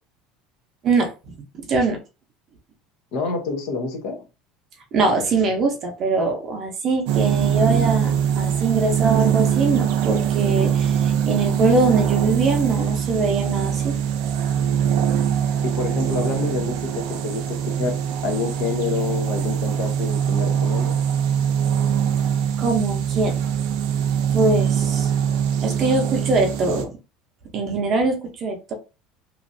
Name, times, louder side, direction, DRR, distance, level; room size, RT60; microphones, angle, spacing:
voice 1, 1.7-2.0 4.9-14.0 22.6-23.3 24.3-25.1 25.6-26.9 27.5-28.7, right 3 dB, 30° right, 3 dB, 0.7 m, -22 dB
voice 2, 3.1-4.2 15.6-21.0, left 4 dB, 55° left, 4 dB, 0.8 m, -27 dB
sound 1, 7.1-26.8, right 8 dB, 70° right, 0.5 m, -22 dB
3.0 x 2.5 x 2.6 m, 0.29 s
cardioid pair, 175°, 0 cm